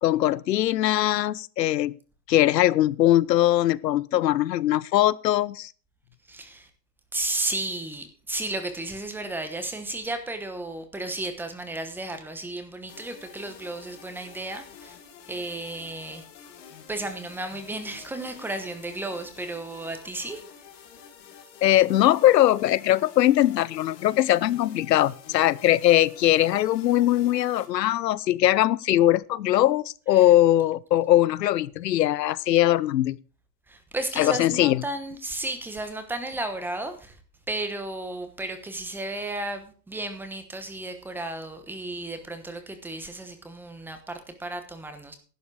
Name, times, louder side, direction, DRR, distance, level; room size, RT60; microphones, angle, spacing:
voice 1, 0.0-2.0 2.3-5.7 21.6-33.2 34.2-34.8, left 13 dB, 80° left, 0.8 m, -21 dB
voice 2, 6.3-6.7 7.1-14.9 15.3-16.3 16.9-20.4 30.1-30.3 33.7-37.2 37.5-45.1, right 2 dB, 5° right, 1.1 m, -33 dB
sound 1, 12.9-27.7, left 8 dB, 45° left, 3.6 m, -48 dB
11.5 x 9.5 x 4.8 m
hypercardioid pair, 150°, 49 cm